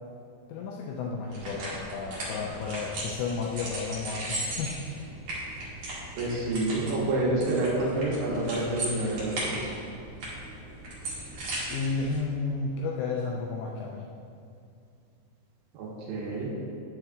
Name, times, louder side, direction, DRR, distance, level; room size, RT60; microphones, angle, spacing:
voice 1, 0.5-5.1 11.7-14.1, left 4 dB, 85° left, -1 dB, 2.5 m, -32 dB
sound 1, 1.3-12.2, right 1 dB, 55° right, 2.4 m, -37 dB
voice 2, 6.2-9.7 15.7-16.5, right 2 dB, 75° right, -5 dB, 3.4 m, -28 dB
9.1 x 8.6 x 2.4 m, 2.4 s
omnidirectional pair, 5.6 m